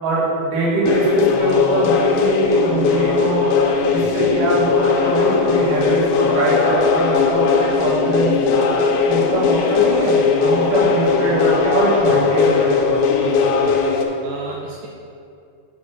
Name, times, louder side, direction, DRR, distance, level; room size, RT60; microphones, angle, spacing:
voice 1, 0.0-3.4 3.9-8.7 9.1-12.9, right 2 dB, 55° right, -7 dB, 2.9 m, -22 dB
sound 1, 0.8-14.0, left 5 dB, 85° left, 2.8 m, -18 dB
voice 2, 13.2-13.8 14.2-14.9, right 5 dB, 80° right, -2 dB, 2.9 m, -34 dB
7.4 x 6.0 x 5.0 m, 2.5 s
omnidirectional pair, 5.9 m